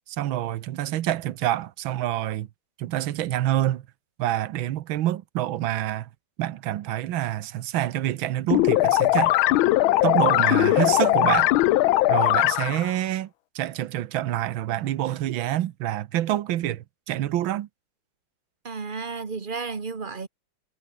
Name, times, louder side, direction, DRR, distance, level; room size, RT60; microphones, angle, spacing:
voice 1, 0.1-2.5 2.8-3.9 4.2-6.1 6.4-9.4 10.0-11.5 12.1-13.3 13.5-17.7, right 13 dB, 85° right, 1.6 m, -27 dB
sound 1, 8.5-12.9, left 16 dB, 85° left, 1.5 m, -20 dB
voice 2, 18.6-20.3, right 4 dB, 30° right, 1.4 m, -32 dB
omnidirectional pair, 2.2 m